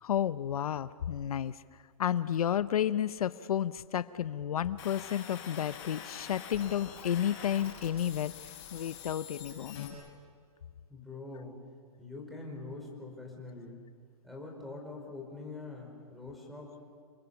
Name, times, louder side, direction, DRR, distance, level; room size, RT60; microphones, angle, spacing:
voice 1, 0.0-1.6 2.0-8.3 8.7-9.9, left 10 dB, 80° left, 15 dB, 0.8 m, -31 dB
sound 1, 4.8-9.9, left 8 dB, 40° left, 7.0 m, -46 dB
voice 2, 10.9-11.6 12.0-13.8 14.2-16.7, left 3 dB, ahead, 0 dB, 5.2 m, -44 dB
28.5 x 24.0 x 7.2 m, 2.1 s
hypercardioid pair, 145°, 19 cm